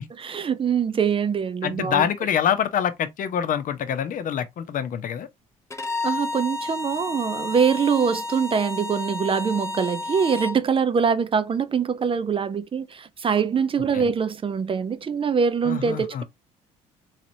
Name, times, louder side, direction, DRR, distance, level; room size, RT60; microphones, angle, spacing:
voice 1, 0.2-2.0 6.0-16.2, right 6 dB, 30° right, 0.5 m, -23 dB
voice 2, 1.6-5.3 13.9-14.1 15.6-16.2, left 9 dB, 55° left, 0.8 m, -25 dB
Bowed string instrument, 5.7-10.6, left 2 dB, 15° left, 0.7 m, -31 dB
4.0 x 3.0 x 2.7 m
hypercardioid pair, 60°, 17 cm